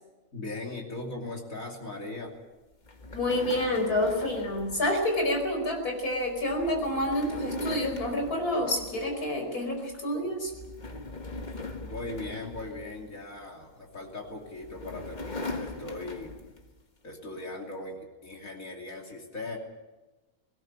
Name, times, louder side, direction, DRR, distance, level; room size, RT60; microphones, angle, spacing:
voice 1, 0.3-2.4 10.9-11.1 11.5-16.3 17.0-19.6, left 2 dB, 60° left, 0 dB, 3.3 m, -39 dB
sound 1, 2.8-9.4 9.8-10.0 10.5-13.5 14.3-16.7, left 2 dB, 30° left, 1.7 m, -40 dB
voice 2, 3.1-10.5, left 1 dB, 80° left, 3 dB, 5.5 m, -28 dB
20.0 x 18.0 x 8.7 m, 1.1 s
omnidirectional pair, 1.6 m